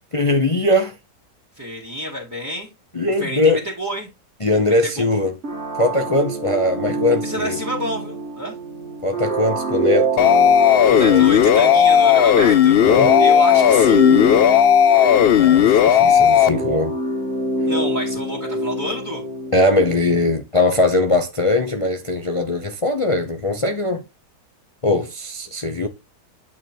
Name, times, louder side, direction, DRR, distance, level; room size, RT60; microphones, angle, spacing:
voice 1, 0.1-0.9 2.9-3.6 4.4-5.3 5.8-7.6 9.0-10.6 11.1-11.3 12.9-13.2 15.4-16.9 19.5-24.0 24.8-25.9, left 2 dB, 30° left, 0.6 m, -20 dB
voice 2, 1.6-2.7 3.2-4.1 4.6-5.1 7.2-8.5 10.9-12.8 13.2-14.0 17.7-19.2, equal, 10° right, 2.2 m, -28 dB
sound 1, 5.4-20.0, right 1 dB, 40° right, 2.2 m, -26 dB
sound 2, 10.2-16.5, left 9 dB, 70° left, 0.5 m, -14 dB
9.1 x 3.7 x 4.5 m
omnidirectional pair, 1.8 m